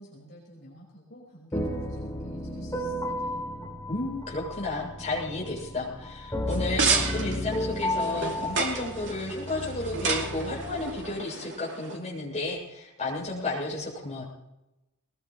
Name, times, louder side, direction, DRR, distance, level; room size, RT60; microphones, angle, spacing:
voice 1, 0.0-3.4, equal, 50° left, -4 dB, 5.2 m, -49 dB
sound 1, 1.5-11.1, left 1 dB, 15° left, 2.8 m, -34 dB
voice 2, 3.9-14.2, left 2 dB, 30° left, -4 dB, 7.1 m, -32 dB
sound 2, 6.5-12.0, right 4 dB, 55° right, 2.8 m, -31 dB
21.0 x 20.5 x 3.3 m, 0.92 s
head